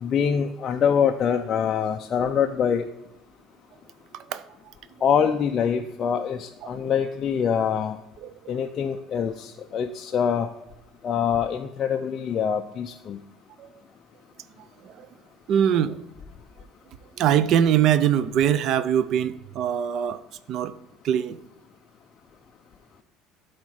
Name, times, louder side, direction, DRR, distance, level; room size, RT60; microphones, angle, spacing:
voice 1, 0.0-2.9 5.0-8.0 8.5-10.5 11.0-13.2, left 7 dB, 30° left, 4 dB, 0.4 m, -24 dB
voice 2, 8.2-8.5 13.6-13.7 14.8-15.1 15.5-16.0 17.2-20.2 20.5-20.7 21.0-21.4, right 9 dB, 45° right, 14 dB, 0.4 m, -23 dB
12.0 x 4.3 x 4.7 m, 0.96 s
cardioid pair, 175°, 0 cm